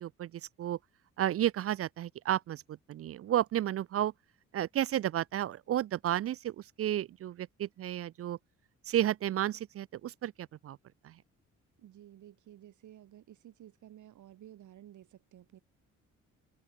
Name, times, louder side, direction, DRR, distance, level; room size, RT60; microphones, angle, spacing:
voice 1, 0.0-0.8 1.2-4.1 4.5-8.4 8.9-10.8 11.0-11.1, right 12 dB, 50° right, 0.5 m, -32 dB
voice 2, 11.8-15.6, right 12 dB, 75° right, 7.6 m, -54 dB
cardioid pair, 90°, 30 cm